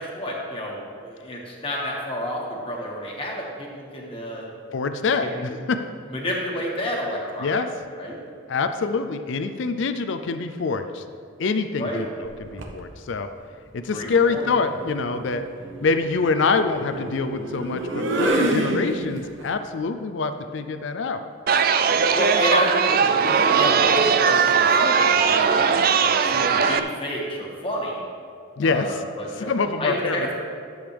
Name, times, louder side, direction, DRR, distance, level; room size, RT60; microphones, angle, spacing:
voice 1, 0.0-4.5 5.2-5.6 6.1-7.6 8.0-8.2 11.8-12.1 13.9-14.5 22.1-28.0 28.6-29.5 29.8-30.3, equal, 25° left, -2 dB, 1.6 m, -30 dB
voice 2, 4.7-5.8 7.4-7.7 8.5-11.0 11.4-12.0 12.4-13.3 13.7-15.5 15.8-21.2 28.6-29.0 29.3-30.3, left 4 dB, 60° left, 9 dB, 0.4 m, -25 dB
sound 1, 12.3-12.8 14.2-19.4, right 1 dB, 60° right, 1.0 m, -28 dB
Chatter, 21.5-26.8, right 6 dB, 45° right, 0.4 m, -19 dB
13.0 x 8.0 x 3.4 m, 2.3 s
head